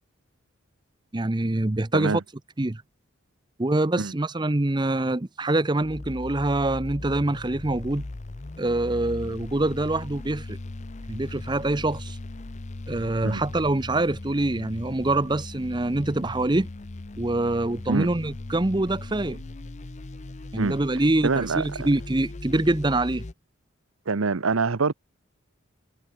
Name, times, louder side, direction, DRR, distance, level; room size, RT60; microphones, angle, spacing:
voice 1, 1.1-2.2 2.6-2.8 3.6-8.1 8.6-10.6 11.1-12.2 12.9-16.7 17.2-19.4 20.5-23.2, right 2 dB, 20° right, 0.7 m, -25 dB
sound 1, 5.8-23.3, left 2 dB, 35° left, 0.6 m, -38 dB
voice 2, 21.2-21.9 24.1-24.9, right 4 dB, 80° right, 0.8 m, -25 dB
head